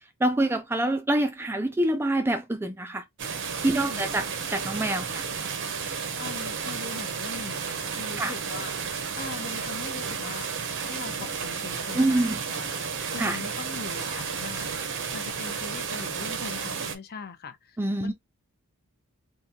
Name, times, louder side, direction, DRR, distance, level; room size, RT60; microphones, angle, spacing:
voice 1, 0.2-3.0 3.6-5.2 8.2-8.3 11.9-12.4 13.2-13.4 17.8-18.1, right 1 dB, 10° right, 0.3 m, -26 dB
sound 1, 3.2-17.0, right 6 dB, 55° right, 0.7 m, -32 dB
voice 2, 3.7-4.1 5.9-10.5 10.8-18.1, left 4 dB, 45° left, 0.6 m, -41 dB
3.6 x 2.6 x 2.7 m
head